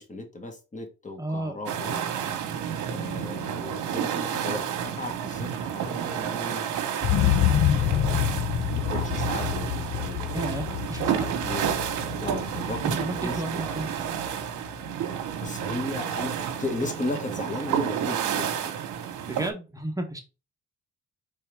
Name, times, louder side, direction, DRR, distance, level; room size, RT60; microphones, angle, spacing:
voice 1, 0.0-2.0 2.9-6.6 7.7-8.4 8.7-10.8 11.4-11.8 12.2-13.7 15.4-18.5, left 2 dB, 25° left, 4 dB, 1.5 m, -36 dB
voice 2, 1.2-1.6 10.3-11.3 12.8-13.9 19.3-20.2, right 1 dB, 10° right, 3 dB, 1.0 m, -32 dB
sound 1, 1.7-19.5, right 9 dB, 80° right, 1.0 m, -30 dB
sound 2, 7.0-14.9 15.3-15.4, left 11 dB, 45° left, 0.6 m, -27 dB
4.7 x 3.4 x 3.3 m, 0.30 s
cardioid pair, 90°, 30 cm